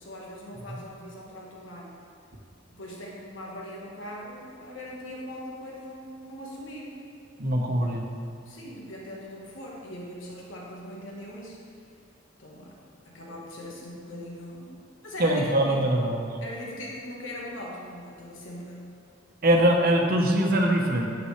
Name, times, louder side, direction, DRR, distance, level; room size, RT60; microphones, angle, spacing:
voice 1, 0.0-2.0 2.7-7.0 8.4-11.6 12.4-12.8 13.0-16.0 16.4-19.0, left 1 dB, 75° left, -4 dB, 1.5 m, -40 dB
voice 2, 7.4-8.0 15.2-16.4 19.4-21.1, right 1 dB, 50° right, 0 dB, 1.0 m, -22 dB
11.5 x 6.9 x 3.3 m, 2.4 s
head